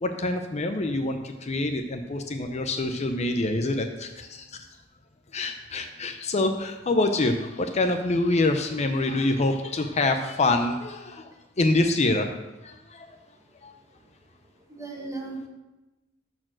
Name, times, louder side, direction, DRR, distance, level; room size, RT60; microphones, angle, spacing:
voice 1, 0.0-4.7 5.3-11.3 11.6-12.3 12.6-13.2 13.6-13.7, left 2 dB, 35° left, 6 dB, 0.6 m, -26 dB
voice 2, 13.1-13.4 13.9-14.2 14.4-15.5, right 3 dB, 15° right, 0 dB, 1.5 m, -39 dB
12.0 x 4.5 x 6.3 m, 1.1 s
head